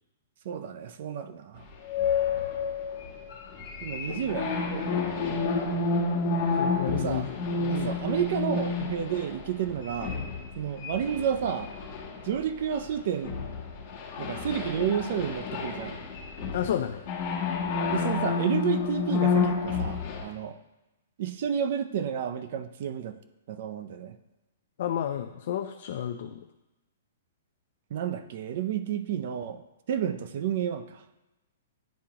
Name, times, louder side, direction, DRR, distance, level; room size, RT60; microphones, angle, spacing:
voice 1, 0.4-1.7 3.8-5.1 6.9-7.3 7.7-10.1 10.6-11.7 12.2-13.4 14.2-16.0 17.9-20.6 21.2-23.2 23.5-24.2 27.9-29.6 29.9-31.0, right 8 dB, 45° right, 10 dB, 0.5 m, -31 dB
sound 1, 1.9-12.9 13.2-20.2, left 4 dB, 30° left, 1.4 m, -30 dB
voice 2, 4.1-4.6 6.6-7.9 16.5-17.0 24.8-26.4, left 10 dB, 50° left, 5 dB, 0.4 m, -32 dB
10.5 x 3.6 x 2.9 m, 1.0 s
hypercardioid pair, 170°, 0 cm